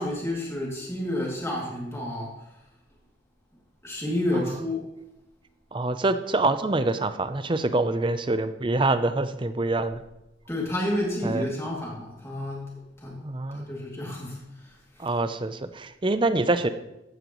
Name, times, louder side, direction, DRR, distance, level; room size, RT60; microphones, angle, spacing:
voice 1, 0.0-2.4 3.8-4.9 10.5-12.7 13.0-13.2 13.5-14.4, left 1 dB, 15° left, -3 dB, 2.6 m, -30 dB
voice 2, 5.7-10.0 11.2-11.4 13.2-13.7 15.0-16.7, right 2 dB, 25° right, 11 dB, 0.5 m, -25 dB
15.0 x 9.1 x 3.1 m, 0.91 s
head